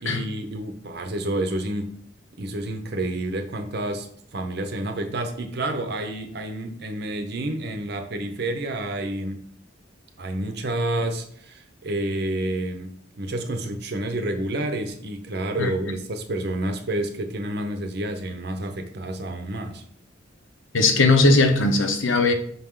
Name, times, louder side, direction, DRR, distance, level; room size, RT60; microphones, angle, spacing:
voice 1, 0.0-1.9 2.4-9.4 10.2-19.8, right 1 dB, 55° right, 0.7 m, -29 dB
voice 2, 20.7-22.3, left 3 dB, 75° left, 0.8 m, -18 dB
5.8 x 4.5 x 3.7 m
head